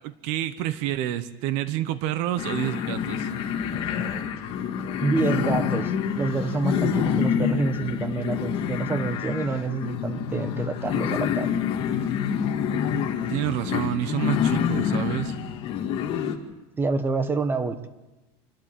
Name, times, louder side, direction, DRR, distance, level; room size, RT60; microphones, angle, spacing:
voice 1, 0.0-3.3 13.3-15.3, right 12 dB, 60° right, 13 dB, 1.1 m, -28 dB
sound 1, 2.4-16.4, left 7 dB, 40° left, 2.2 m, -27 dB
voice 2, 5.0-5.9 6.2-11.6 16.8-17.9, right 3 dB, 15° right, 12 dB, 1.0 m, -27 dB
27.0 x 12.5 x 9.1 m, 1.1 s
cardioid pair, 160°, 14 cm